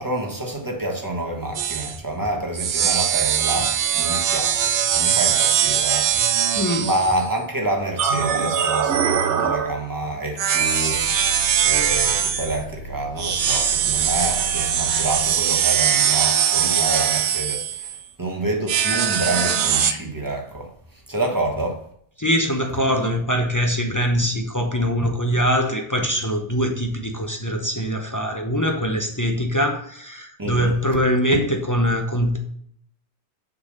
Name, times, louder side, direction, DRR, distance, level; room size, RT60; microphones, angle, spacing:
voice 1, 0.0-11.0 11.6-20.7 21.1-21.8 30.4-30.7, right 1 dB, 15° right, 1.5 m, -28 dB
sound 1, 1.5-2.0 2.6-7.3 8.0-9.8 10.4-12.6 13.2-18.1 18.7-19.9, right 8 dB, 80° right, 1.0 m, -21 dB
voice 2, 6.6-6.9 22.2-32.4, equal, 20° left, 0.8 m, -22 dB
sound 2, 10.9-15.8, right 2 dB, 50° left, 1.2 m, -37 dB
6.9 x 3.9 x 6.5 m
omnidirectional pair, 1.2 m